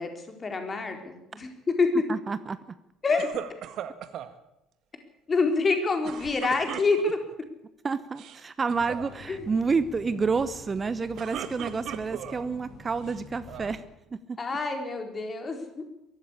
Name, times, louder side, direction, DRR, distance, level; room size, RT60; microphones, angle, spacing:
voice 1, 0.0-1.9 3.0-3.3 5.3-7.2 9.3-9.5 14.4-15.8, left 4 dB, 30° left, 5 dB, 4.4 m, -27 dB
voice 2, 2.1-2.6 7.8-13.8 14.3-14.4, right 4 dB, 30° right, 14 dB, 1.0 m, -29 dB
sound 1, 3.2-4.3 6.0-7.3 8.0-8.4 8.7-9.1 10.9-12.5 13.0-13.8, right 10 dB, 55° right, 1.6 m, -38 dB
sound 2, 8.7-13.8, left 3 dB, 50° left, 6.2 m, -48 dB
23.0 x 14.0 x 8.5 m, 0.87 s
figure-of-eight pair, 55°, 0 cm